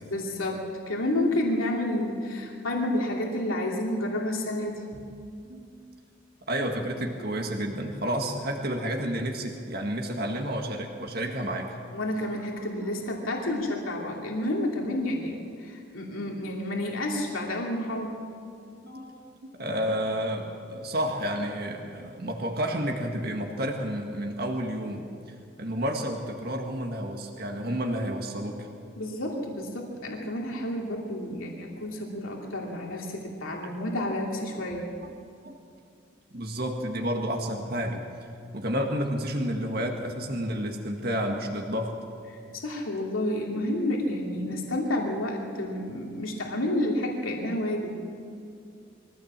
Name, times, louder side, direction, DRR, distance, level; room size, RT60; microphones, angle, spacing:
voice 1, 0.0-4.8 11.9-18.2 29.0-34.9 42.6-47.9, left 1 dB, 90° left, -1 dB, 2.8 m, -30 dB
voice 2, 6.5-11.7 18.8-25.1 25.6-28.7 35.0-35.1 35.4-35.5 36.3-38.1 38.5-42.0, equal, 50° right, 1 dB, 1.8 m, -30 dB
23.0 x 16.0 x 7.5 m, 2.4 s
head